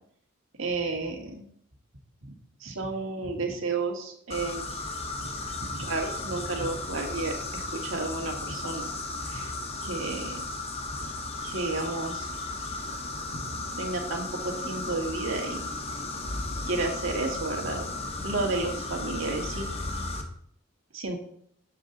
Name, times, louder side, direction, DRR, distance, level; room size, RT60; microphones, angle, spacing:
voice 1, 0.6-1.5 2.2-2.3 2.6-4.7 5.6-8.9 9.2-9.5 9.8-10.4 11.4-12.3 13.3-13.4 13.8-15.6 16.7-17.9 18.2-19.7 20.9-21.2, right 3 dB, 75° right, 2 dB, 1.7 m, -32 dB
sound 1, 4.3-20.2, left 2 dB, 30° left, 0.8 m, -35 dB
7.5 x 6.8 x 3.9 m, 0.67 s
head